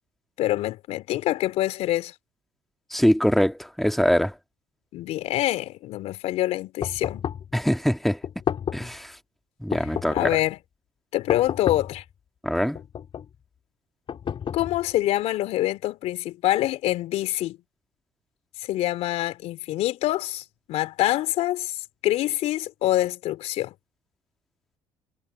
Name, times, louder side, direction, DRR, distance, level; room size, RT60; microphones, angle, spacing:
voice 1, 0.4-2.1 4.9-7.2 10.1-10.6 11.1-12.0 14.5-17.6 18.6-23.7, left 15 dB, 65° left, 3.4 m, -25 dB
voice 2, 2.9-4.3 7.5-8.2 8.7-9.2 9.6-10.3 12.4-12.8, equal, ahead, 2.1 m, -23 dB
sound 1, 6.8-7.5 8.2-9.0 9.7-10.5 11.3-12.0 12.7-13.3 14.1-15.0, left 8 dB, 50° left, 4.0 m, -31 dB
hypercardioid pair, 65°, 12 cm